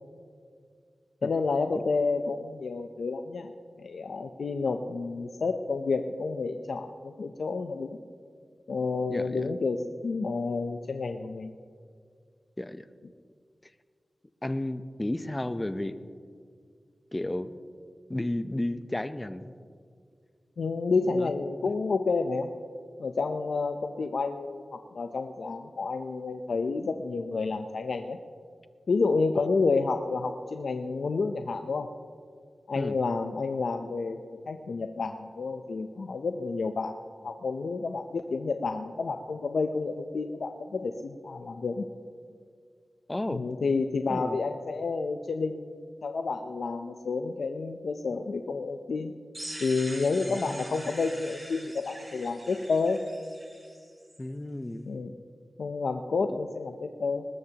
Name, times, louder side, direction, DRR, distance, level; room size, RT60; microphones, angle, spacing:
voice 1, 1.2-3.5 3.8-8.0 8.7-11.5 20.6-22.5 23.0-28.2 28.9-31.9 32.7-37.0 37.2-41.9 43.3-49.1 49.6-53.0 54.9-55.1 55.6-57.3, left 4 dB, 85° left, 5 dB, 0.6 m, -30 dB
voice 2, 9.1-9.5 12.6-12.8 14.4-16.0 17.1-17.6 18.1-19.5 21.1-21.3 32.7-33.0 43.1-43.4 44.1-44.4 50.3-50.7 54.2-54.9 56.3-56.4, left 1 dB, 20° left, 11 dB, 0.7 m, -33 dB
sound 1, 49.3-54.2, right 1 dB, 25° right, 4.0 m, -44 dB
20.5 x 20.0 x 2.9 m, 2.2 s
wide cardioid pair, 80°, 0 cm